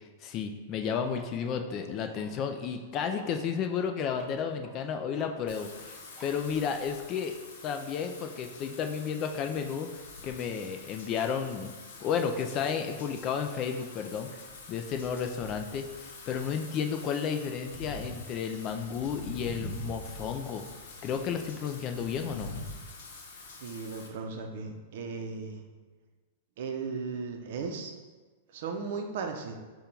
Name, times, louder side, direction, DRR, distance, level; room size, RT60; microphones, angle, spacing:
voice 1, 0.2-7.3 7.6-11.7 12.0-14.4 14.7-20.7 21.0-22.5, left 7 dB, 30° left, 6 dB, 0.3 m, -32 dB
sound 1, 0.8-7.0, left 2 dB, 10° left, 0.7 m, -51 dB
Wind / Rain, 5.5-24.1, left 2 dB, 70° left, 0.8 m, -45 dB
voice 2, 23.6-25.6 26.6-27.9 28.5-29.5, right 4 dB, 60° right, 4 dB, 0.6 m, -36 dB
5.2 x 2.3 x 4.4 m, 1.3 s
supercardioid pair, 155°, 0 cm